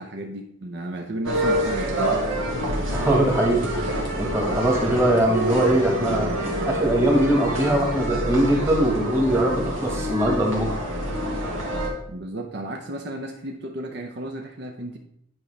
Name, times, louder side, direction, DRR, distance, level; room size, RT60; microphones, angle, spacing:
voice 1, 0.0-2.2 12.1-15.0, right 1 dB, 55° right, 3 dB, 0.6 m, -34 dB
sound 1, 1.2-11.9, right 1 dB, 85° right, 1.9 m, -27 dB
voice 2, 2.9-3.7 4.2-6.3 6.7-10.8, right 1 dB, 15° right, 0 dB, 1.4 m, -21 dB
9.5 x 5.0 x 3.3 m, 0.75 s
head